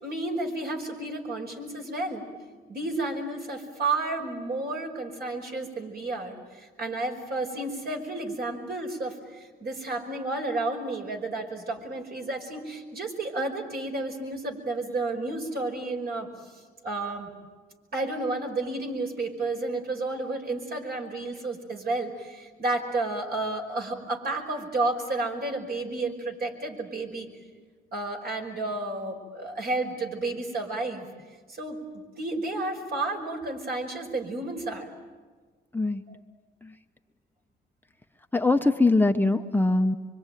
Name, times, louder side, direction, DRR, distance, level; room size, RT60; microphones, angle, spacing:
voice 1, 0.0-2.2 2.7-16.3 16.8-17.3 17.9-27.3 27.9-31.1 31.5-34.9 36.1-36.2, right 2 dB, 50° right, 3 dB, 5.2 m, -31 dB
voice 2, 38.3-40.0, left 2 dB, 10° left, 5 dB, 0.9 m, -22 dB
25.0 x 24.5 x 9.2 m, 1.4 s
cardioid pair, 90°, 20 cm